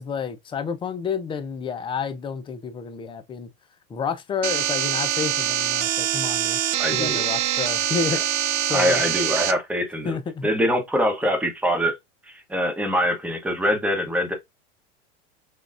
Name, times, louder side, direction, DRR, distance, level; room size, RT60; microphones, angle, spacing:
voice 1, 0.0-3.5 3.9-6.6 6.9-9.0 10.0-10.5, left 6 dB, 15° left, 0.5 m, -30 dB
sound 1, 4.4-9.5, right 10 dB, 85° right, 0.7 m, -24 dB
voice 2, 6.8-7.2 8.7-10.2 10.4-12.0 12.3-14.3, equal, 5° right, 1.0 m, -23 dB
6.3 x 2.3 x 2.5 m
supercardioid pair, 135°, 35 cm